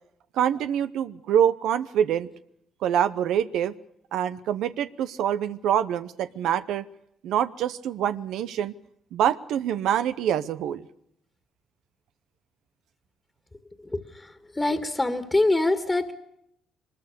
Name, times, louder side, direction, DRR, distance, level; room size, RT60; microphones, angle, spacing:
voice 1, 0.3-2.3 2.8-3.7 4.1-6.8 7.2-8.7 9.1-10.8, right 9 dB, 85° right, 12 dB, 0.8 m, -25 dB
voice 2, 13.8-16.1, left 2 dB, 15° left, 8 dB, 1.9 m, -25 dB
23.5 x 20.5 x 6.7 m, 0.74 s
cardioid pair, 90°, 0 cm